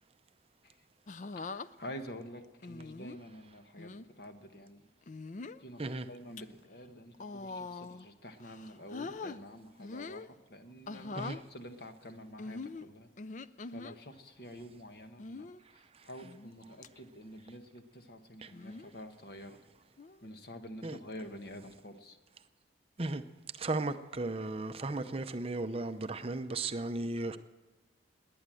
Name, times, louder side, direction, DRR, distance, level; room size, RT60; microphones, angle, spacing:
sound 1, 1.1-1.7 2.6-3.2 3.8-4.0 5.0-5.6 6.1-6.4 7.1-8.1 8.4-9.4 9.8-10.3 10.9-11.4 12.4-14.0 15.2-15.6 16.2-16.6 16.8-16.9 18.5-18.9 20.0-20.3, left 3 dB, 40° left, 0.4 m, -43 dB
voice 1, 1.3-4.9 5.6-13.1 13.4-19.6 20.2-22.2 24.4-24.5 26.5-26.7 27.2-27.3, equal, 60° left, 1.5 m, -48 dB
voice 2, 23.6-27.4, right 2 dB, 30° right, 0.6 m, -35 dB
19.5 x 9.4 x 7.7 m
head